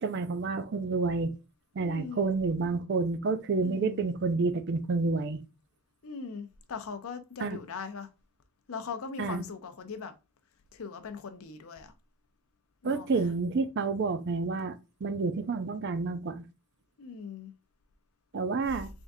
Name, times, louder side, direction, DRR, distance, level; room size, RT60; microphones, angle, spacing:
voice 1, 0.0-1.3 1.8-5.4 7.4-7.6 9.2-9.4 12.8-16.4 18.3-18.9, right 4 dB, 50° right, 0.4 m, -29 dB
voice 2, 1.8-2.3 3.6-4.1 6.0-8.1 8.7-10.1 10.7-11.9 12.8-13.2 17.0-17.5 18.7-18.8, left 5 dB, 70° left, 0.5 m, -40 dB
3.6 x 3.5 x 2.6 m
head